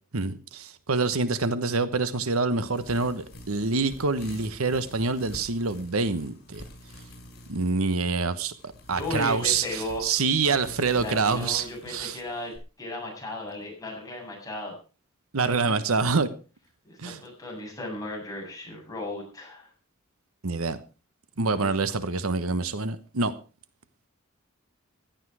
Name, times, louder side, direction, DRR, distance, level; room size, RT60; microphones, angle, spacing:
voice 1, 0.1-6.6 7.5-8.5 8.9-12.2 15.3-16.3 17.0-17.2 20.4-20.8 21.4-23.3, right 4 dB, 80° right, 13 dB, 1.2 m, -26 dB
sound 1, 2.7-12.6, left 1 dB, 50° left, 6.6 m, -47 dB
voice 2, 9.0-10.1 10.9-12.5 12.8-14.7 15.4-15.8 16.8-19.7 21.6-22.0, left 1 dB, 15° left, -1 dB, 7.9 m, -36 dB
16.0 x 12.0 x 4.9 m, 0.35 s
head